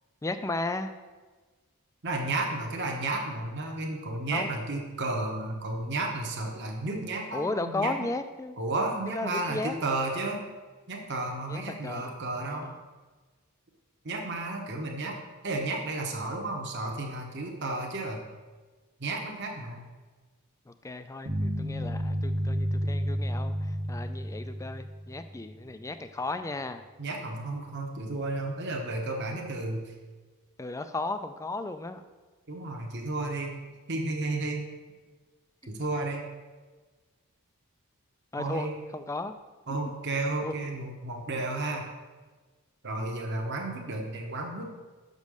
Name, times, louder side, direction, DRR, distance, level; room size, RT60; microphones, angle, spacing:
voice 1, 0.2-0.9 4.3-4.5 7.3-8.6 9.1-9.7 11.5-12.1 12.5-12.7 20.8-23.6 23.9-26.8 30.6-32.0 38.3-38.7 38.9-39.3 39.7-39.8 40.4-40.5, left 2 dB, 15° left, 10 dB, 0.3 m, -34 dB
voice 2, 2.0-8.1 8.6-10.4 10.9-12.7 14.0-18.2 19.0-19.9 27.0-29.9 32.5-33.6 33.9-34.7 35.7-36.2 38.4-38.8 39.7-41.9 42.8-44.7, right 2 dB, 50° right, 1 dB, 1.1 m, -32 dB
sound 1, 21.3-25.5, equal, 70° right, 1.5 m, -31 dB
6.3 x 5.3 x 6.4 m, 1.3 s
head